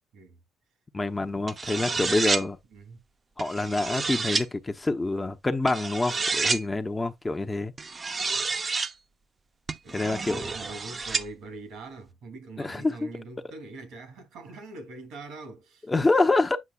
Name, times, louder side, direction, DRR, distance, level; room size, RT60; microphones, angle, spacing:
voice 1, 0.9-2.6 3.4-7.7 9.9-10.4 12.6-13.1 15.9-16.6, left 2 dB, 20° left, 0.8 m, -26 dB
sound 1, 1.5-2.4 3.4-4.4 5.7-6.6 7.8-8.9 9.7-11.2, right 4 dB, 30° right, 0.6 m, -29 dB
voice 2, 1.8-3.0 4.0-4.1 9.8-15.9, right 3 dB, 75° right, 2.4 m, -43 dB
8.3 x 5.5 x 2.3 m
cardioid pair, 85°, 0 cm